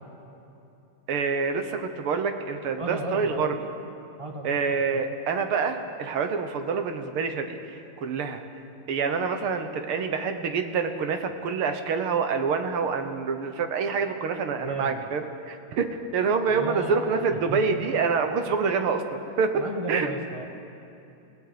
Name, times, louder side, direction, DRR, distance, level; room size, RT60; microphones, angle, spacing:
voice 1, 1.1-3.5 4.4-8.4 8.9-19.6 19.9-20.1, right 5 dB, 75° right, 7 dB, 2.1 m, -27 dB
voice 2, 2.8-3.5 4.2-5.0 14.6-15.0 16.5-17.8 19.5-20.5, right 1 dB, 15° right, 3 dB, 1.4 m, -35 dB
30.0 x 17.0 x 5.2 m, 2.8 s
omnidirectional pair, 2.4 m